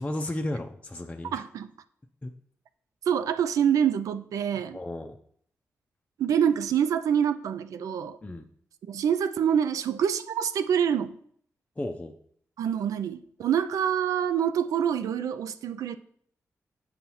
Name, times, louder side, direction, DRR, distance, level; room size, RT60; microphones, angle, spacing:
voice 1, 0.0-1.4 2.2-2.3 4.7-5.2 8.2-8.4 11.8-12.1, left 1 dB, 20° left, 4 dB, 0.5 m, -33 dB
voice 2, 1.3-1.7 3.1-4.8 6.2-8.2 8.9-11.2 12.6-16.0, right 8 dB, 90° right, 11 dB, 0.3 m, -26 dB
7.5 x 5.4 x 3.0 m, 0.63 s
cardioid pair, 60°, 6 cm